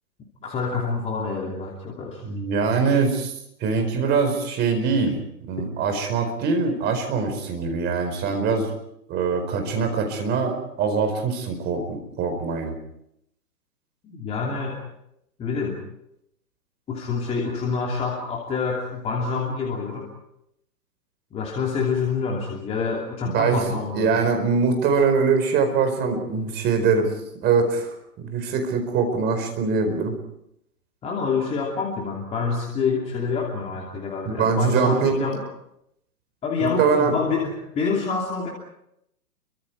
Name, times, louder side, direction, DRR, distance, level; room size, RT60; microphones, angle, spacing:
voice 1, 0.4-2.2 14.0-14.8 15.4-15.8 16.9-20.1 21.3-24.1 31.0-35.4 36.4-38.5, left 5 dB, 15° left, -1 dB, 2.8 m, -27 dB
voice 2, 2.2-3.3 3.6-5.2 5.5-8.7 9.1-12.7 23.2-27.1 27.4-30.1 34.2-35.2 36.6-37.1, right 5 dB, 20° right, 6 dB, 4.7 m, -23 dB
30.0 x 24.5 x 4.7 m, 0.78 s
hypercardioid pair, 145°, 49 cm